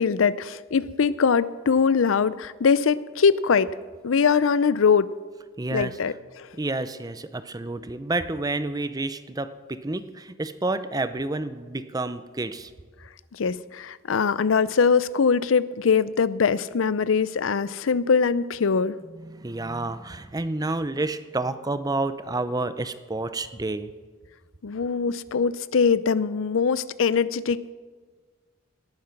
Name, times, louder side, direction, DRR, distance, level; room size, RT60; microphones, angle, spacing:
voice 1, 0.0-3.7 4.0-5.1 5.7-6.5 13.3-19.0 24.6-27.7, left 5 dB, 90° left, 17 dB, 0.5 m, -22 dB
voice 2, 5.6-5.9 6.6-12.7 19.2-23.9, right 2 dB, 20° right, 12 dB, 0.6 m, -29 dB
18.5 x 8.7 x 5.9 m, 1.5 s
head